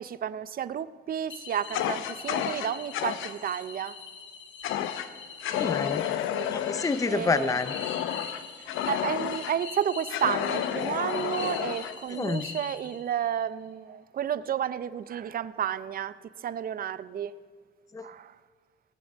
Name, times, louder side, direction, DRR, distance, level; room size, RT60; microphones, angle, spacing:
voice 1, 0.0-3.9 6.3-6.6 7.1-7.6 8.9-16.1 16.4-17.3 18.0-18.3, right 9 dB, 45° right, 16 dB, 0.5 m, -31 dB
sound 1, 1.3-13.3, left 5 dB, 70° left, 1.7 m, -43 dB
Fire, 1.7-3.3 4.6-5.1 5.4-9.6 10.1-12.0, left 10 dB, 90° left, 0.6 m, -31 dB
voice 2, 5.5-6.1 6.5-7.8 12.1-12.5 17.9-18.1, left 4 dB, 15° left, 13 dB, 0.5 m, -28 dB
17.5 x 7.9 x 5.2 m, 1.5 s
cardioid pair, 90°, 20 cm